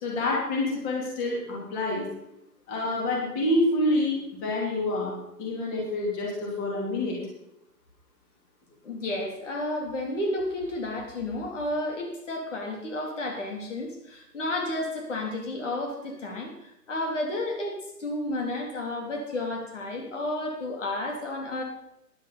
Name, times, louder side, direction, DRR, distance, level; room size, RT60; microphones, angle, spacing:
voice 1, 0.0-2.0 2.7-5.1 5.4-7.2, left 1 dB, 15° left, -3 dB, 3.4 m, -27 dB
voice 2, 8.8-21.6, left 1 dB, 50° left, 1 dB, 3.3 m, -32 dB
15.5 x 11.0 x 4.2 m, 0.83 s
hypercardioid pair, 160°, 48 cm